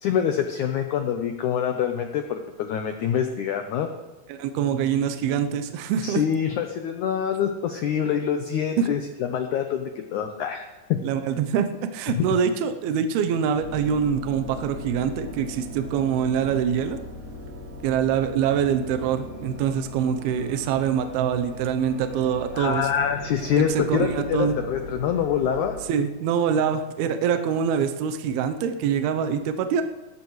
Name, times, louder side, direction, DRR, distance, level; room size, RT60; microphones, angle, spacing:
voice 1, 0.0-3.9 6.0-11.0 12.1-12.3 22.5-25.8, left 8 dB, 85° left, 5 dB, 1.7 m, -25 dB
voice 2, 4.3-6.2 8.8-8.9 11.0-17.0 17.8-22.9 23.6-24.6 25.9-29.8, right 7 dB, 80° right, 7 dB, 2.6 m, -24 dB
sound 1, 13.5-25.8, right 1 dB, 65° right, 4.9 m, -39 dB
18.0 x 14.0 x 3.2 m, 1.2 s
omnidirectional pair, 4.5 m